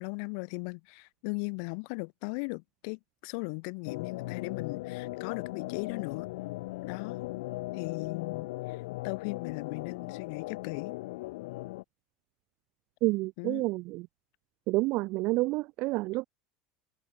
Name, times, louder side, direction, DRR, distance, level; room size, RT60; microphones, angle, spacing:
voice 1, 0.0-6.3 6.8-7.2 7.7-10.9 13.4-13.6, left 40 dB or more, 65° left, 6.8 m, -38 dB
sound 1, 3.9-11.8, left 20 dB, 85° left, 2.3 m, -38 dB
voice 2, 13.0-14.1 14.7-16.3, right 21 dB, 55° right, 0.8 m, -29 dB
supercardioid pair, 150°, 3 cm